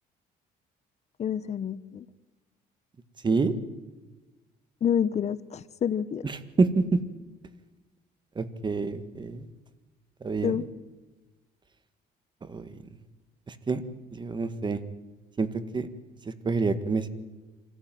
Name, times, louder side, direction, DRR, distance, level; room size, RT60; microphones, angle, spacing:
voice 1, 1.2-2.1 4.8-6.3 10.4-10.7, left 8 dB, 40° left, 16 dB, 0.8 m, -28 dB
voice 2, 6.6-7.0 8.3-9.5 10.2-10.6 12.4-12.8 13.5-13.8 14.1-14.8 15.4-15.5 15.7-15.9 16.2-17.1, right 4 dB, 25° right, 12 dB, 1.7 m, -27 dB
26.0 x 15.0 x 9.3 m, 1.2 s
cardioid pair, 110°, 17 cm